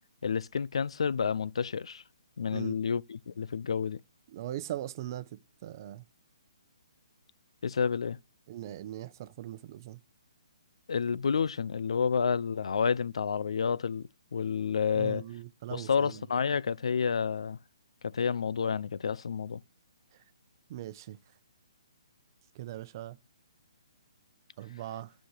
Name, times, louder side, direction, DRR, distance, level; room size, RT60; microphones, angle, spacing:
voice 1, 0.2-2.0 2.4-4.0 7.6-8.2 10.9-14.0 14.3-15.2 15.7-17.6 18.0-19.6, left 6 dB, 75° left, 0.5 m, -29 dB
voice 2, 4.3-6.0 8.5-10.0 14.9-16.2 20.7-21.2 22.5-23.2 24.6-25.1, right 13 dB, 40° right, 0.8 m, -40 dB
8.9 x 6.3 x 8.1 m
hypercardioid pair, 150°, 3 cm